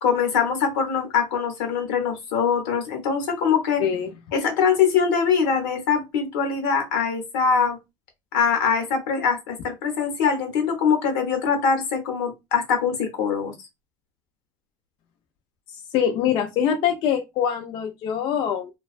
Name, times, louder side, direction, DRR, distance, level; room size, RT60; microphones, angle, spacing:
voice 1, 0.0-3.8 4.3-7.8 8.3-13.5, left 6 dB, 85° left, 0.9 m, -23 dB
voice 2, 3.8-4.1 15.7-18.7, left 8 dB, 50° left, 0.4 m, -24 dB
2.3 x 2.2 x 2.4 m
cardioid pair, 130°, 10 cm